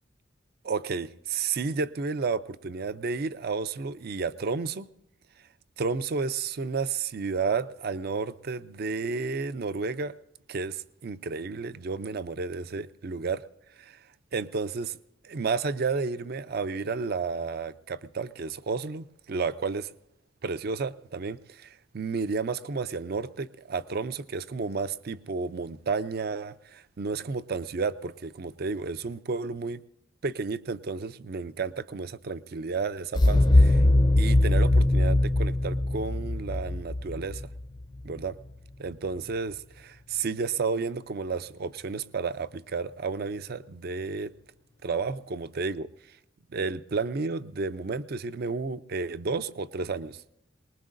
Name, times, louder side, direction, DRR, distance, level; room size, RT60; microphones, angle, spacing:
voice 1, 0.6-4.9 5.8-10.1 10.5-13.4 13.8-14.0 14.3-15.0 15.2-19.9 20.4-29.8 30.2-33.8 34.2-37.4 38.0-38.4 38.8-44.3 44.8-45.9 46.5-50.2, right 4 dB, 50° right, 0.5 m, -32 dB
sound 1, 33.1-38.0, left 1 dB, 20° left, 0.5 m, -21 dB
23.0 x 20.0 x 2.6 m
head